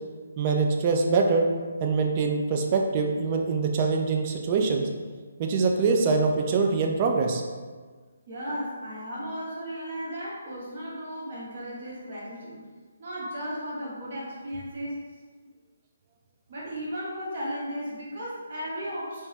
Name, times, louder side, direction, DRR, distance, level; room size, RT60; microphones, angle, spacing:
voice 1, 0.4-1.5 1.8-4.9 5.4-7.4, right 4 dB, 30° right, 2 dB, 0.3 m, -24 dB
voice 2, 8.3-12.6 13.0-15.0 16.5-19.3, equal, 50° right, -7 dB, 1.0 m, -35 dB
3.3 x 2.0 x 2.8 m, 1.5 s
hypercardioid pair, 160°, 0 cm